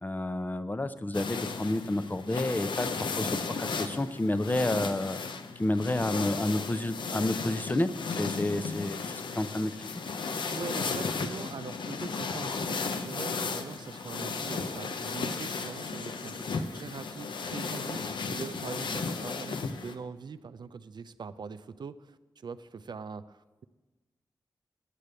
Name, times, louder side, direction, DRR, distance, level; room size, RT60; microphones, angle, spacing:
voice 1, 0.0-5.2 5.6-9.9, left 1 dB, 25° left, 12 dB, 0.5 m, -30 dB
sound 1, 1.1-19.9, left 4 dB, 90° left, 0.6 m, -35 dB
voice 2, 10.5-23.6, right 5 dB, 70° right, 12 dB, 0.4 m, -42 dB
8.4 x 6.7 x 7.6 m, 1.2 s
wide cardioid pair, 70°, 8 cm